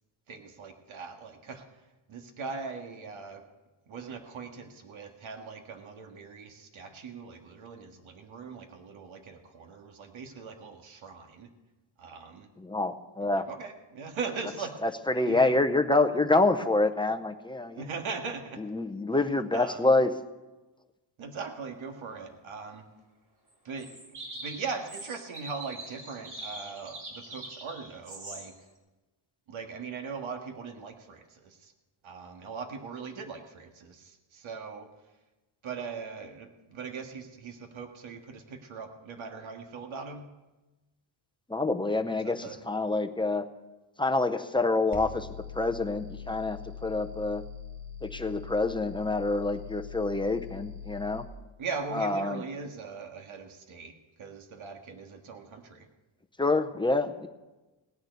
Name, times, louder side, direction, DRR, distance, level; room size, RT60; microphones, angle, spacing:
voice 1, 0.3-1.6 2.1-3.4 3.9-11.5 12.0-12.5 13.2-14.8 15.2-15.6 17.7-18.6 19.5-19.9 21.2-22.9 23.6-23.9 24.3-28.5 29.5-31.7 32.0-34.9 35.6-40.3 42.2-42.6 51.6-55.9, right 5 dB, 75° right, 4 dB, 1.8 m, -40 dB
voice 2, 12.6-13.4 14.8-17.9 18.7-20.1 41.5-43.4 44.0-45.3 45.5-47.4 48.0-51.2 51.9-52.4 56.4-57.3, left 2 dB, 10° left, 7 dB, 0.5 m, -27 dB
sound 1, 23.5-23.6 23.8-28.6, right 2 dB, 50° right, 3.5 m, -43 dB
sound 2, 44.9-51.3, left 6 dB, 25° right, 1.1 m, -42 dB
18.0 x 6.6 x 9.4 m, 1.1 s
wide cardioid pair, 170°, 48 cm